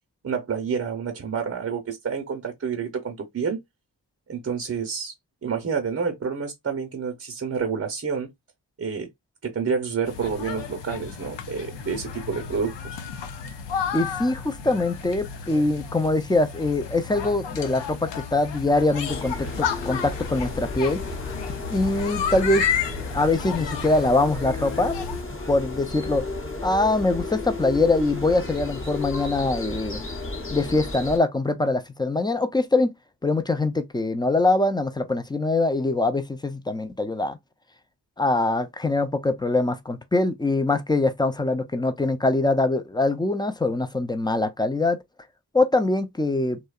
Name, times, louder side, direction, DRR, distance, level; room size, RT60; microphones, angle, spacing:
voice 1, 0.2-3.6 4.3-5.1 5.4-8.3 8.8-9.1 9.4-13.0, right 6 dB, 35° right, 0.6 m, -29 dB
sound 1, 10.1-25.2, left 7 dB, 80° left, 0.6 m, -32 dB
voice 2, 13.9-21.0 21.7-22.6 23.1-25.0 25.5-26.2 26.6-30.0 30.5-32.9 33.2-37.4 38.2-45.0 45.5-46.6, left 2 dB, 10° left, 0.4 m, -23 dB
sound 2, 19.1-31.2, left 2 dB, 30° left, 0.8 m, -33 dB
2.7 x 2.1 x 2.3 m
cardioid pair, 45°, 43 cm